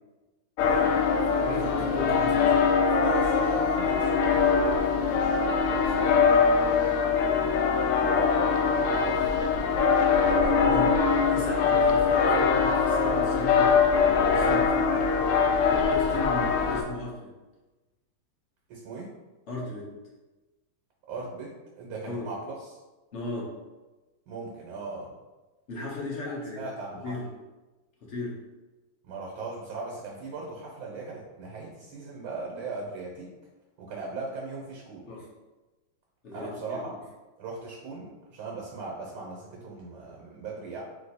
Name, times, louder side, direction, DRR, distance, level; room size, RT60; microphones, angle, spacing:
sound 1, 0.6-16.8, left 5 dB, 90° left, 1.5 m, -23 dB
voice 1, 0.6-0.9 2.4-7.0 7.9-11.2 18.7-19.1 21.1-22.7 24.3-25.1 26.2-27.0 29.0-33.3 33.8-35.1 36.3-36.9 37.4-40.8, right 3 dB, 75° right, -2 dB, 1.7 m, -39 dB
voice 2, 1.2-2.6 10.6-11.0 11.3-15.1 15.7-17.4 19.5-20.0 22.0-22.3 23.1-23.6 25.7-26.6 27.0-27.3 28.0-28.4 35.1-35.3 36.2-36.8, left 2 dB, 50° left, -4 dB, 0.8 m, -36 dB
4.1 x 2.9 x 4.1 m, 1.1 s
omnidirectional pair, 2.4 m